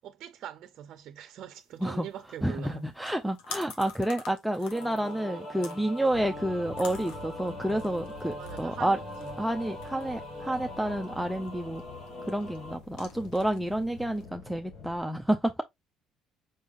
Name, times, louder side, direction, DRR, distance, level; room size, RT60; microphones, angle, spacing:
voice 1, 0.0-2.8 4.6-4.7 5.2-5.5 8.4-9.4, right 10 dB, 60° right, 0.5 m, -43 dB
sound 1, 1.6-14.3, left 6 dB, 85° left, 1.3 m, -49 dB
voice 2, 2.4-9.0 9.4-11.8 12.2-15.6, right 1 dB, ahead, 0.5 m, -29 dB
sound 2, 4.7-12.8, left 1 dB, 45° left, 2.2 m, -42 dB
sound 3, 6.1-15.0, left 4 dB, 70° left, 1.4 m, -47 dB
5.4 x 3.5 x 2.5 m
supercardioid pair, 90°, 0 cm